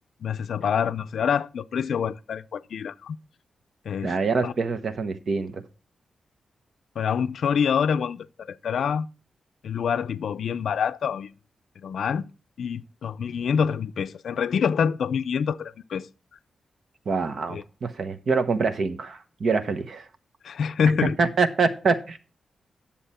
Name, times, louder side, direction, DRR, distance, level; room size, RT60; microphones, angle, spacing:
voice 1, 0.2-3.2 3.9-4.1 4.4-4.5 7.0-9.1 9.6-11.3 11.8-12.3 12.6-16.1 17.5-17.6 20.4-21.2, left 7 dB, 80° left, 0.4 m, -26 dB
voice 2, 4.0-5.6 17.1-20.1 21.2-22.2, right 4 dB, 60° right, 0.9 m, -25 dB
10.5 x 7.2 x 4.2 m
wide cardioid pair, 120°, 0 cm